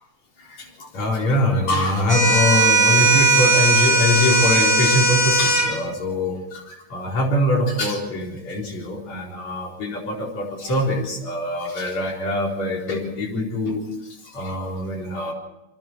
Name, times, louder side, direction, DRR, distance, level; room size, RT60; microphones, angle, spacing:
voice 1, 0.4-13.8 14.3-15.3, left 1 dB, 50° left, 0 dB, 5.3 m, -23 dB
sound 1, 2.1-5.7, right 2 dB, 25° right, 8.6 m, -17 dB
26.5 x 22.5 x 4.6 m, 0.98 s
omnidirectional pair, 3.9 m